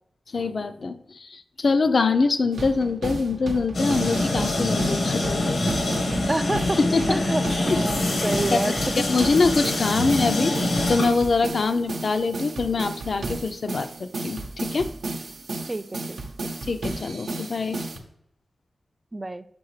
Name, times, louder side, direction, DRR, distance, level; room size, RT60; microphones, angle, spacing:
voice 1, 0.3-5.6 6.3-6.4 6.8-7.2 7.5-7.8 8.2-14.9 16.7-17.9, left 4 dB, 60° left, 9 dB, 0.4 m, -24 dB
sound 1, 2.5-18.0, right 2 dB, 80° right, 0.7 m, -33 dB
sound 2, 3.7-11.6, left 2 dB, 85° left, 1.2 m, -25 dB
voice 2, 6.3-6.8 7.1-9.1 15.7-16.5 19.1-19.4, right 2 dB, 25° right, 12 dB, 0.3 m, -28 dB
6.0 x 5.6 x 3.1 m, 0.74 s
wide cardioid pair, 75°, 0 cm